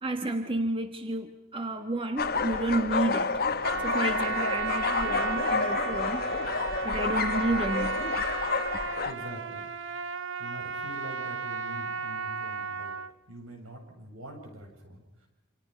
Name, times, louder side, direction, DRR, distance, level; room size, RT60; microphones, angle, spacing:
voice 1, 0.0-3.4 3.8-6.3 6.8-8.3, right 1 dB, 25° right, 6 dB, 1.4 m, -31 dB
sound 1, 2.2-9.1, left 4 dB, 45° left, 1.2 m, -29 dB
Trumpet, 3.6-13.1, right 5 dB, 65° right, 1.0 m, -34 dB
voice 2, 9.0-9.7 10.4-12.9 13.3-15.3, equal, 80° right, 2 dB, 7.8 m, -45 dB
29.0 x 27.0 x 5.3 m, 0.98 s
head